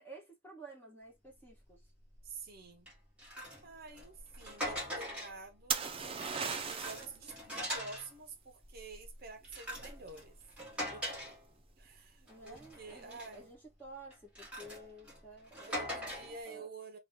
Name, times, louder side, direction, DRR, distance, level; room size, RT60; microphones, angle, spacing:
voice 1, 0.0-1.8 12.3-16.7, right 2 dB, 10° left, 1.2 m, -53 dB
sound 1, 1.5-1.6 2.1-2.3 2.9-5.5 6.0-8.1 8.6-11.9 12.3-13.5 14.1-16.4, equal, 5° right, 1.3 m, -43 dB
voice 2, 2.2-2.9 3.6-5.8 6.6-10.4 10.8-11.3 11.8-13.5 15.7-17.0, right 3 dB, 45° right, 0.8 m, -49 dB
sound 2, 5.7-7.2 10.8-11.3, right 6 dB, 25° right, 0.4 m, -36 dB
3.0 x 2.3 x 3.6 m
head